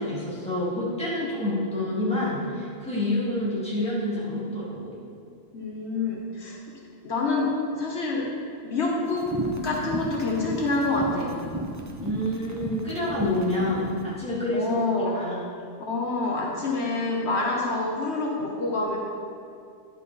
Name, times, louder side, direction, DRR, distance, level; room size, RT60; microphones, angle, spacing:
voice 1, 0.0-4.9 12.0-14.8 15.2-15.4, left 1 dB, 5° left, -9 dB, 2.1 m, -28 dB
voice 2, 5.5-6.6 7.0-8.3 8.6-9.3 9.6-11.4 14.5-15.3 15.8-19.0, left 3 dB, 70° left, -2 dB, 1.2 m, -27 dB
sound 1, 9.1-14.0, equal, 20° right, 0.6 m, -33 dB
10.5 x 4.9 x 4.0 m, 2.4 s
omnidirectional pair, 1.2 m